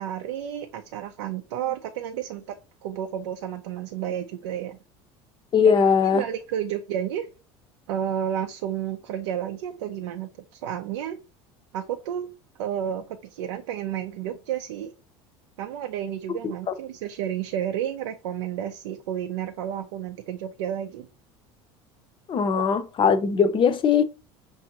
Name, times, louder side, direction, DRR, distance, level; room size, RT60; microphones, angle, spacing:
voice 1, 0.0-4.8 5.6-5.7 6.0-7.3 7.9-11.2 11.7-12.3 12.6-14.9 15.6-21.1 22.5-22.7, right 10 dB, 85° right, 0.5 m, -31 dB
voice 2, 5.5-6.2 22.3-24.0, left 6 dB, 35° left, 0.6 m, -20 dB
6.0 x 2.6 x 2.8 m
supercardioid pair, 95°, 15 cm